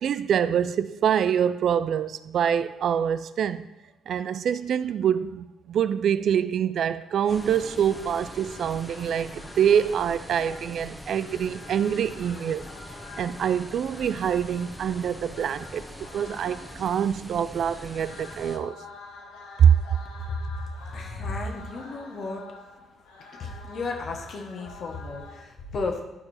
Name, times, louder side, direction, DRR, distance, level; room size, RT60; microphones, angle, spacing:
voice 1, 0.0-3.7 4.1-12.7 13.2-18.8 19.6-19.7, right 8 dB, 60° right, 0.3 m, -25 dB
sound 1, 7.3-25.4, left 3 dB, 80° left, 1.1 m, -47 dB
sound 2, 7.3-18.6, equal, 5° left, 1.1 m, -43 dB
voice 2, 20.9-22.4 23.4-26.0, left 3 dB, 55° left, 1.3 m, -33 dB
11.0 x 4.6 x 4.3 m
hypercardioid pair, 45°, 0 cm